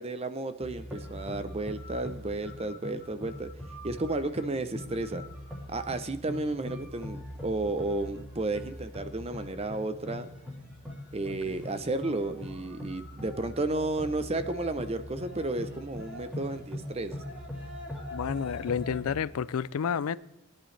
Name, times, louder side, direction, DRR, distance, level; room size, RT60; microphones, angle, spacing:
voice 1, 0.0-3.5 3.8-5.2 5.7-10.3 11.1-17.2, right 2 dB, 25° right, 0.7 m, -32 dB
sound 1, 0.6-19.2, left 1 dB, 5° right, 3.1 m, -42 dB
voice 2, 18.1-20.2, left 7 dB, 70° left, 0.4 m, -30 dB
21.5 x 10.5 x 3.3 m
head